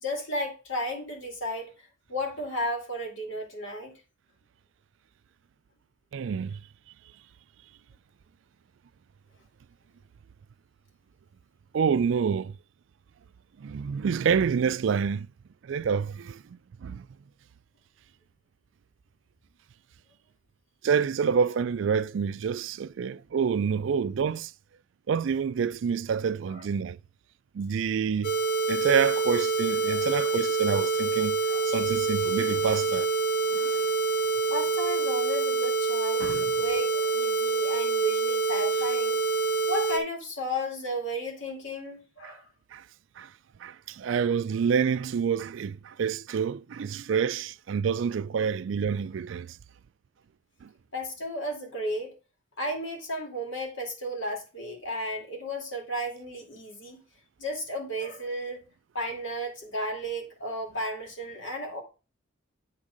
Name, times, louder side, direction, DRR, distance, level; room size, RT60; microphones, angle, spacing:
voice 1, 0.0-1.7 2.1-3.9 26.5-26.7 29.8-30.1 31.5-31.7 34.5-39.2 39.7-42.4 44.1-44.2 50.9-52.1 52.6-57.0 57.4-58.6 58.9-61.8, equal, 70° left, 2.4 m, -34 dB
voice 2, 6.1-6.6 11.7-12.6 13.6-15.3 15.6-17.1 20.8-24.5 25.1-27.0 27.5-28.4 28.7-31.4 31.6-33.1 33.5-33.9 36.2-36.5 42.2-42.4 42.7-42.8 43.2-43.3 43.6-49.6 50.6-50.7, right 6 dB, 70° right, 0.3 m, -28 dB
sound 1, 28.2-40.0, right 4 dB, 50° left, 1.0 m, -26 dB
8.9 x 3.6 x 5.1 m
head